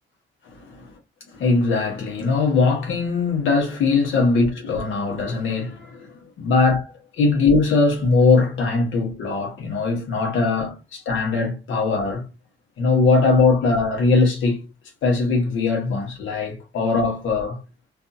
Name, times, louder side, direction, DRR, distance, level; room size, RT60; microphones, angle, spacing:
voice 1, 0.5-0.9 1.3-12.2 12.8-14.6 15.0-17.6, left 4 dB, 75° left, 1.1 m, -21 dB
2.6 x 2.4 x 2.6 m
cardioid pair, 90°, 20 cm